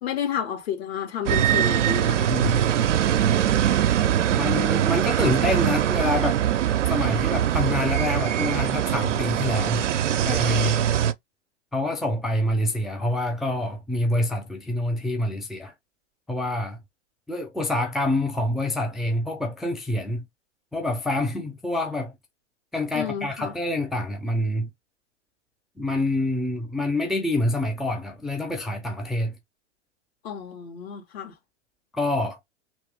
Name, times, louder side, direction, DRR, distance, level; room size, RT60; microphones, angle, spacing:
voice 1, 0.0-2.3 22.9-23.5 30.2-31.3, left 8 dB, 60° left, 1.7 m, -31 dB
sound 1, 1.3-11.1, right 10 dB, 80° right, 0.6 m, -22 dB
voice 2, 2.3-2.7 4.3-6.4 6.9-9.8 10.3-10.8 11.7-15.7 16.3-16.8 17.3-20.2 20.7-22.2 22.7-24.7 25.8-29.4 31.9-32.4, left 1 dB, ahead, 0.5 m, -26 dB
3.1 x 3.1 x 3.4 m
hypercardioid pair, 110°, 36 cm